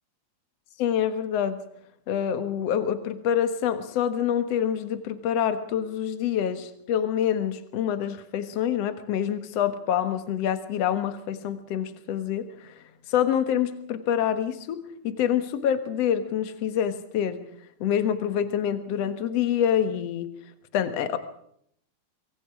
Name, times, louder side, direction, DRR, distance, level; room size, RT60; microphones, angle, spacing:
voice 1, 0.8-1.6 2.1-17.4 17.8-20.3 20.7-21.2, left 9 dB, 60° left, 10 dB, 2.4 m, -26 dB
25.0 x 23.5 x 4.9 m, 0.69 s
omnidirectional pair, 3.3 m